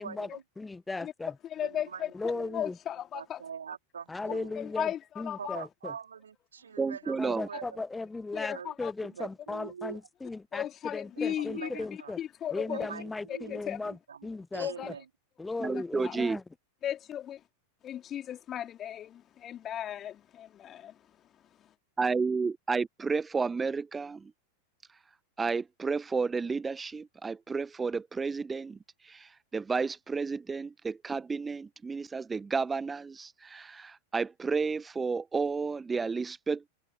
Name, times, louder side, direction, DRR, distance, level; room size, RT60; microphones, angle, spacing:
voice 1, 0.0-0.4 1.6-2.6 3.1-4.5 5.4-7.8 8.5-8.7 9.0-10.0 10.6-10.7 11.1-12.1 12.5-14.3 14.5-15.1, right 7 dB, 70° right, 4.4 m, -44 dB
voice 2, 0.6-1.3 2.1-2.8 4.1-5.9 7.2-12.2 12.5-14.9 15.4-16.4, left 3 dB, 10° left, 1.1 m, -37 dB
voice 3, 1.4-3.4 4.5-5.6 8.3-8.9 10.5-12.9 13.3-13.8 14.6-14.9 15.7-16.2 16.8-17.4 17.8-21.0, left 10 dB, 30° left, 3.2 m, -36 dB
voice 4, 6.8-7.5 15.6-16.4 22.0-24.2 25.4-28.8 29.1-36.7, right 4 dB, 15° right, 1.2 m, -31 dB
figure-of-eight pair, 90°, 0 cm